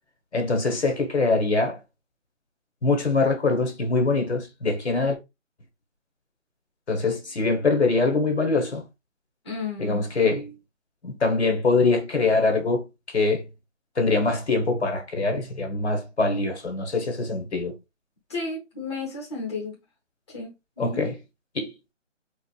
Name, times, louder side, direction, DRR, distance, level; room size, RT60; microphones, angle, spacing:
voice 1, 0.3-1.8 2.8-5.2 6.9-8.8 9.8-10.5 11.0-13.4 14.0-17.7 20.8-21.2 21.5-21.9, left 3 dB, 60° left, 1.1 m, -23 dB
voice 2, 9.4-10.0 18.3-19.7 20.3-21.0, left 3 dB, 20° left, 0.9 m, -33 dB
4.4 x 2.4 x 2.3 m
hypercardioid pair, 170°, 37 cm